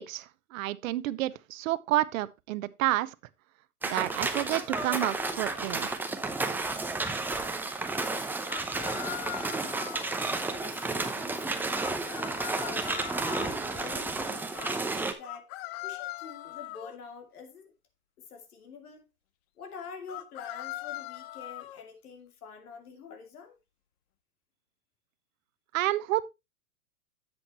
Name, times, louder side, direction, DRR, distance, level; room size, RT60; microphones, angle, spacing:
voice 1, 0.0-3.1 3.8-6.0 25.7-26.2, right 15 dB, 65° right, 0.8 m, -30 dB
sound 1, 3.8-15.1, right 3 dB, 5° right, 0.7 m, -32 dB
sound 2, 4.7-5.3 8.5-10.2 11.8-13.6 15.2-17.0 20.1-21.8, left 16 dB, 45° left, 0.7 m, -40 dB
voice 2, 6.8-9.5 10.5-12.1 12.5-12.9 13.2-15.5 15.8-17.7 18.2-19.1 19.6-23.6, left 6 dB, 80° left, 2.7 m, -47 dB
10.5 x 7.9 x 3.0 m
hypercardioid pair, 130°, 44 cm